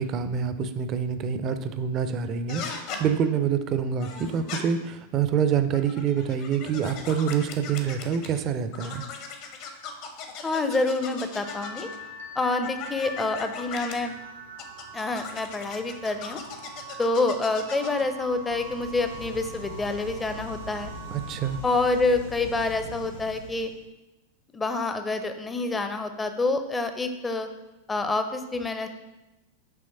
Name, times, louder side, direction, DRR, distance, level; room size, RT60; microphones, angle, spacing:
voice 1, 0.0-9.0 21.1-21.6, right 7 dB, 35° right, 10 dB, 0.5 m, -26 dB
sound 1, 2.5-3.0 4.0-4.6 5.6-8.4 8.7-12.0 12.6-14.0 14.6-18.0, left 6 dB, 45° left, 0.8 m, -39 dB
voice 2, 10.4-11.9 12.4-14.1 14.9-16.4 17.0-20.9 21.6-23.7 24.5-27.5 27.9-28.9, left 3 dB, 15° left, 8 dB, 0.6 m, -27 dB
sound 2, 11.4-21.6, right 1 dB, 85° right, 1.0 m, -43 dB
sound 3, 18.2-23.8, equal, 80° left, 1.6 m, -42 dB
7.0 x 3.1 x 5.5 m, 1.0 s
figure-of-eight pair, 90°, 0 cm